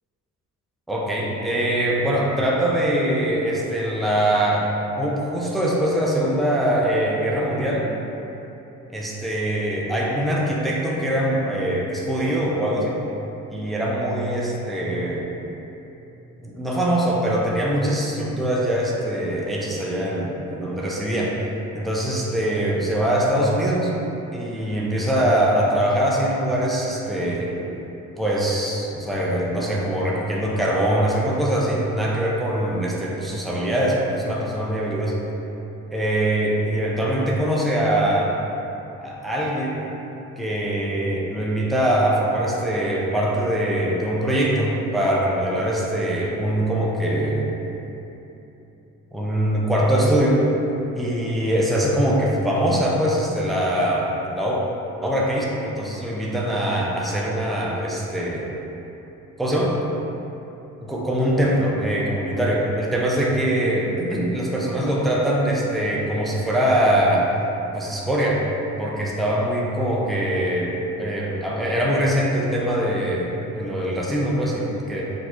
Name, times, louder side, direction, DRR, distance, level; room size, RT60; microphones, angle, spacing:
voice 1, 0.9-4.7 5.0-7.9 8.9-13.0 13.5-15.3 16.4-21.3 21.7-23.9 24.3-27.5 28.2-35.2 35.9-38.3 39.0-39.8 40.4-47.5 49.1-50.4 51.0-54.6 55.0-58.4 59.4-59.8 60.9-67.3 67.7-68.4 68.8-70.7 71.0-75.0, right 1 dB, ahead, -5 dB, 0.4 m, -22 dB
4.2 x 2.4 x 2.3 m, 3.0 s
cardioid pair, 90°, 30 cm